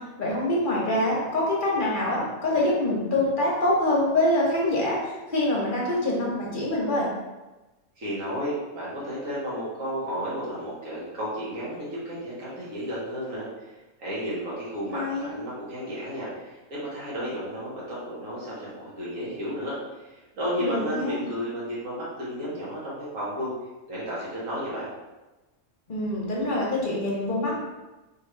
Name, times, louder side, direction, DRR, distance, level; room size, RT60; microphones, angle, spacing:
voice 1, 0.2-7.1 14.9-15.3 20.6-21.3 25.9-27.6, left 1 dB, 40° left, -4 dB, 1.0 m, -25 dB
voice 2, 8.0-13.7 14.0-23.5 23.9-24.9, equal, 65° right, -8 dB, 1.9 m, -33 dB
4.5 x 3.0 x 3.3 m, 1.1 s
omnidirectional pair, 1.5 m